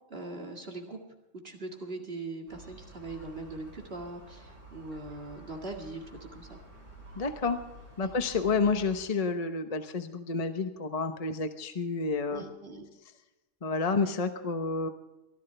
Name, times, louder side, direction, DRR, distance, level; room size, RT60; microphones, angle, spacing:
voice 1, 0.1-1.0 1.4-6.6 8.0-8.1 12.3-12.9, right 2 dB, 50° right, 2 dB, 2.3 m, -41 dB
Gull seagull, 2.5-9.0, right 2 dB, 85° right, 6.5 m, -50 dB
voice 2, 7.2-7.6 8.0-12.4 13.6-14.9, left 4 dB, 35° left, 8 dB, 1.0 m, -29 dB
23.0 x 15.0 x 3.4 m, 1.0 s
omnidirectional pair, 1.3 m